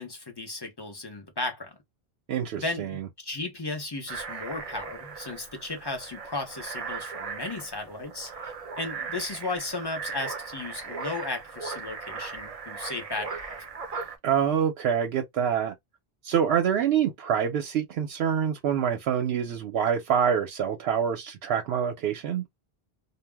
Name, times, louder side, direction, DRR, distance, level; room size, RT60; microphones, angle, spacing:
voice 1, 0.0-1.8 2.6-8.3 8.8-13.6, left 3 dB, 30° left, 0.6 m, -35 dB
voice 2, 2.3-3.1 14.2-15.7 16.2-22.4, right 8 dB, 85° right, 0.8 m, -26 dB
sound 1, 4.1-14.2, right 5 dB, 45° right, 0.6 m, -38 dB
2.1 x 2.0 x 3.3 m
omnidirectional pair, 1.0 m